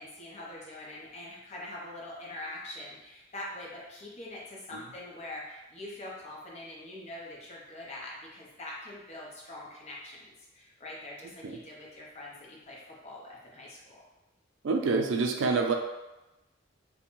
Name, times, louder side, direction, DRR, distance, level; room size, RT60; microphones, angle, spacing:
voice 1, 0.0-14.0, left 1 dB, 35° left, -4 dB, 0.6 m, -44 dB
voice 2, 14.6-15.7, right 4 dB, 75° right, 4 dB, 0.3 m, -27 dB
2.5 x 2.1 x 3.0 m, 1.0 s
head